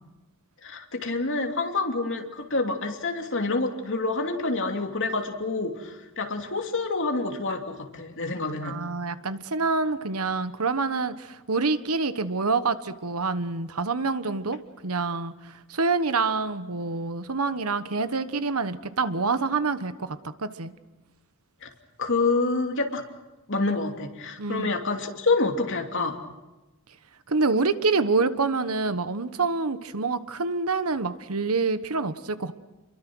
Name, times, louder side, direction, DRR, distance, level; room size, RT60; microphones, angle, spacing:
voice 1, 0.6-8.8 21.6-21.7 22.0-23.0 23.5-26.2, left 3 dB, 60° left, 3 dB, 2.9 m, -27 dB
voice 2, 8.6-20.7 24.4-24.7 27.3-32.5, right 4 dB, 85° right, 12 dB, 1.3 m, -27 dB
30.0 x 22.5 x 6.3 m, 1.1 s
head